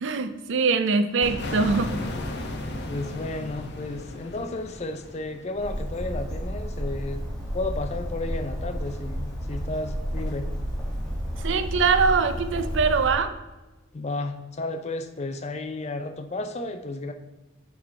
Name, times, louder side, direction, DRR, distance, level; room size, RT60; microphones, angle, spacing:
voice 1, 0.0-1.9 11.4-13.4, right 4 dB, 65° right, 10 dB, 0.5 m, -23 dB
sound 1, 1.2-5.9, left 1 dB, 55° left, 0.9 m, -34 dB
voice 2, 2.9-7.3 7.5-10.5 13.9-17.1, left 2 dB, 35° left, 7 dB, 0.5 m, -33 dB
Bird, 5.5-13.1, equal, 5° left, 1.9 m, -31 dB
6.1 x 4.7 x 4.4 m, 1.1 s
head